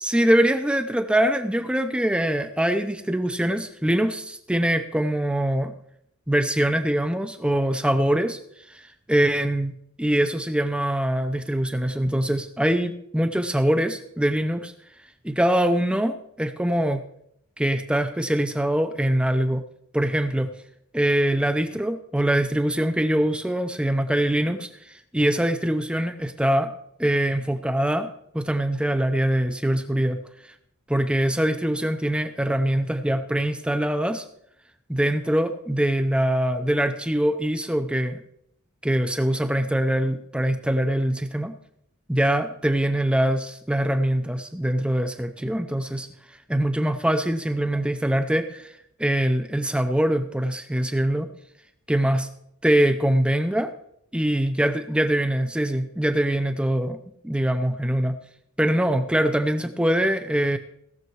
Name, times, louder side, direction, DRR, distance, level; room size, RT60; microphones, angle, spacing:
voice 1, 0.0-5.7 6.3-8.4 8.7-9.7 10.0-14.7 15.2-17.0 17.6-19.6 19.9-20.5 20.9-24.7 25.1-26.7 27.0-28.1 28.3-30.2 30.9-34.2 34.9-38.2 38.8-41.5 42.1-46.1 46.5-48.7 49.0-51.3 51.9-52.3 52.6-53.7 54.1-57.0 57.2-58.2 58.6-60.6, right 1 dB, 5° right, 8 dB, 0.7 m, -23 dB
17.5 x 6.8 x 4.7 m, 0.72 s
head